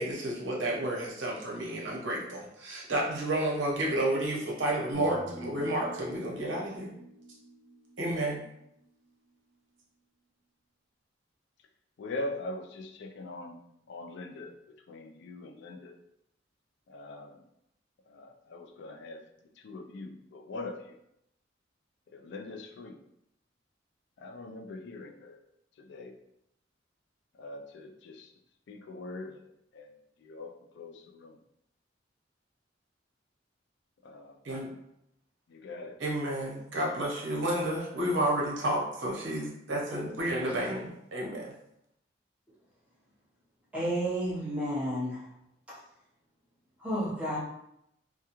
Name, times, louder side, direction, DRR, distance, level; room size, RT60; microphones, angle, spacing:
voice 1, 0.0-6.9 8.0-8.4 34.4-34.7 36.0-41.5, right 1 dB, 80° right, -3 dB, 0.8 m, -31 dB
sound 1, 4.9-9.1, equal, 10° left, 0.6 m, -48 dB
voice 2, 12.0-13.6 13.9-16.0 16.9-17.5 18.1-19.2 19.6-21.0 22.1-23.0 24.2-25.4 25.8-26.2 27.3-28.3 28.7-29.4 29.7-31.4 34.0-34.4 35.5-36.0, left 2 dB, 65° left, 4 dB, 0.3 m, -42 dB
voice 3, 43.7-45.2 46.8-47.4, equal, 5° right, -8 dB, 0.9 m, -31 dB
2.3 x 2.2 x 2.9 m, 0.78 s
head